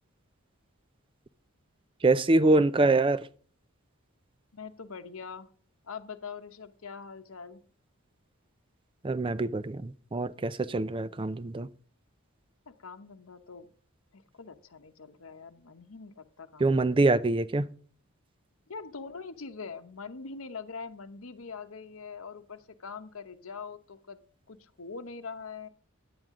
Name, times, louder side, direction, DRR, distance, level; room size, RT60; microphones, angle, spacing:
voice 1, 2.0-3.3 9.0-11.7 16.6-17.7, right 2 dB, 25° right, 0.4 m, -25 dB
voice 2, 4.5-5.5 5.8-7.6 12.7-13.7 14.1-16.6 18.7-24.2 24.5-25.7, left 5 dB, 70° left, 0.9 m, -43 dB
10.5 x 9.1 x 3.7 m
head